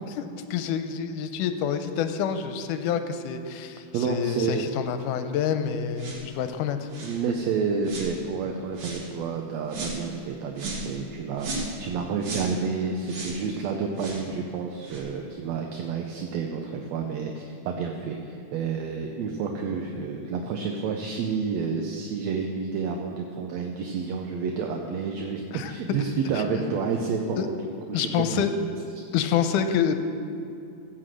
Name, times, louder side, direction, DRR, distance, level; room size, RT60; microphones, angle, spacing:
voice 1, 0.1-6.9 25.5-25.7 26.3-26.6 27.4-27.5 27.9-28.5 29.1-29.9, left 8 dB, 90° left, 9 dB, 2.2 m, -27 dB
voice 2, 3.9-4.7 7.0-28.4, right 5 dB, 70° right, 2 dB, 1.8 m, -30 dB
sound 1, 6.0-6.3 6.9-7.2 7.8-8.1 8.7-9.1 9.7-10.0 10.6-10.9 11.4-11.8 12.2-12.5 13.0-13.4 14.0-14.2 14.8-15.0, right 3 dB, 50° right, 2.5 m, -34 dB
15.0 x 5.9 x 7.7 m, 2.7 s
omnidirectional pair, 3.7 m